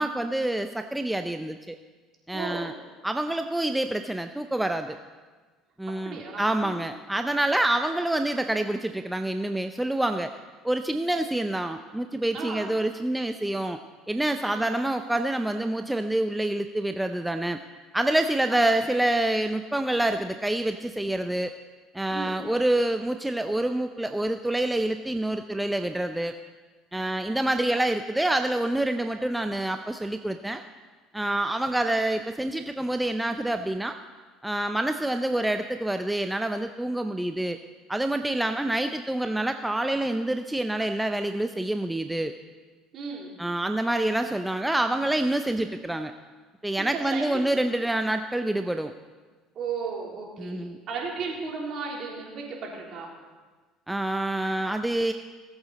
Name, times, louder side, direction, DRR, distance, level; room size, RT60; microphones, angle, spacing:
voice 1, 0.0-1.8 2.3-2.7 3.0-5.0 5.8-10.3 10.6-13.8 14.1-17.6 17.9-21.5 21.9-26.3 26.9-30.6 31.1-34.0 34.4-37.6 37.9-42.3 43.4-46.1 46.6-48.9 50.4-50.8 53.9-55.1, right 1 dB, 5° right, 7 dB, 0.5 m, -27 dB
voice 2, 2.3-2.7 6.0-6.9 12.3-12.7 14.4-14.7 18.5-18.7 22.1-22.4 42.9-43.3 46.9-47.4 49.5-53.1, right 5 dB, 50° right, -2 dB, 3.5 m, -35 dB
18.5 x 8.0 x 4.1 m, 1.4 s
supercardioid pair, 90°, 0 cm